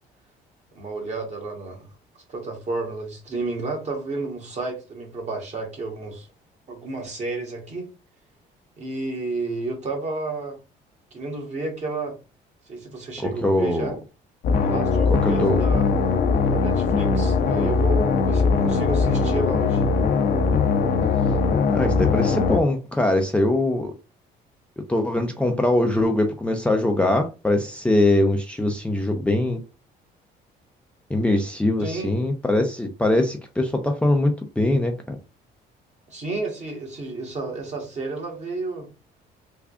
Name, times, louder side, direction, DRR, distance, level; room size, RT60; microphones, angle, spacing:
voice 1, 0.7-6.3 6.7-7.9 8.8-10.6 11.1-12.2 12.7-13.9 14.6-15.9 16.5-19.8 31.8-32.1 36.1-38.9, right 3 dB, 40° right, 1.5 m, -31 dB
voice 2, 13.2-13.9 15.1-15.6 21.7-23.9 24.9-29.6 31.1-35.2, left 1 dB, 5° left, 0.5 m, -22 dB
sound 1, 14.4-22.6, left 4 dB, 60° left, 0.7 m, -20 dB
3.6 x 2.3 x 3.5 m
cardioid pair, 110°, 17 cm